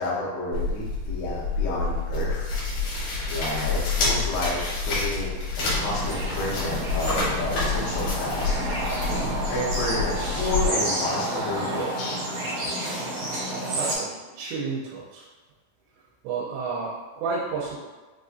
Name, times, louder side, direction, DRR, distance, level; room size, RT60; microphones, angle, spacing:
voice 1, 0.0-2.5 2.8-2.9 3.3-5.4 5.7-9.2 9.5-12.3, left 2 dB, 85° left, -5 dB, 2.8 m, -31 dB
sound 1, 0.5-10.7, left 3 dB, 70° left, 1.8 m, -28 dB
sound 2, 5.6-14.0, right 1 dB, 70° right, 1.8 m, -30 dB
voice 2, 13.7-15.3 16.2-17.8, right 4 dB, 90° right, -5 dB, 2.8 m, -31 dB
6.6 x 2.4 x 2.5 m, 1.3 s
omnidirectional pair, 4.9 m